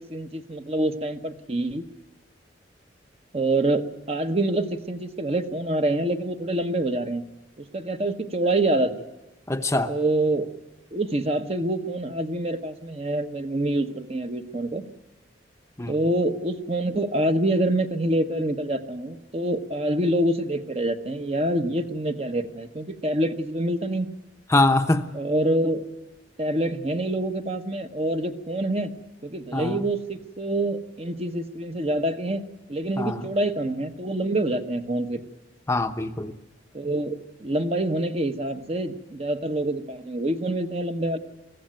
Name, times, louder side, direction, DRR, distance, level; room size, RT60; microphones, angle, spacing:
voice 1, 0.1-1.8 3.3-7.2 7.6-9.0 9.9-10.5 10.9-14.8 15.9-24.1 25.1-25.8 26.4-28.9 29.2-32.4 32.7-35.2 36.7-41.2, right 1 dB, 35° right, 1.2 m, -26 dB
voice 2, 9.5-9.9 15.8-16.0 24.5-25.1 29.5-29.8 33.0-33.3 35.7-36.4, left 2 dB, 15° left, 0.8 m, -23 dB
22.5 x 15.5 x 9.1 m
head